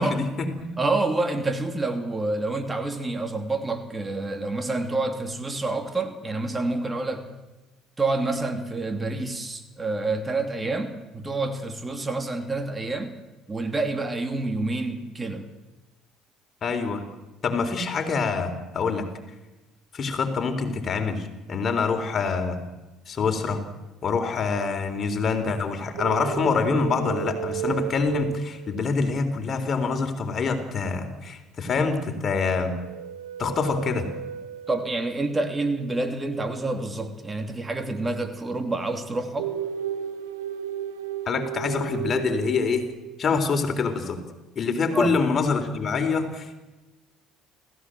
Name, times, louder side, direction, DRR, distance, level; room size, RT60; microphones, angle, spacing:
voice 1, 0.0-0.7 16.6-17.0 17.4-19.1 19.9-22.6 23.1-23.6 24.0-32.8 33.4-34.1 41.3-42.8 43.2-44.2 44.6-46.5, left 4 dB, 40° left, 7 dB, 3.7 m, -25 dB
voice 2, 0.8-7.3 8.0-13.2 13.5-15.5 34.7-39.5 44.9-45.2, right 2 dB, 20° right, 6 dB, 2.9 m, -28 dB
sound 1, 26.0-29.2 32.7-35.3 39.4-43.2, right 10 dB, 80° right, 1.5 m, -33 dB
29.0 x 15.5 x 7.7 m, 1.1 s
hypercardioid pair, 55°, 0 cm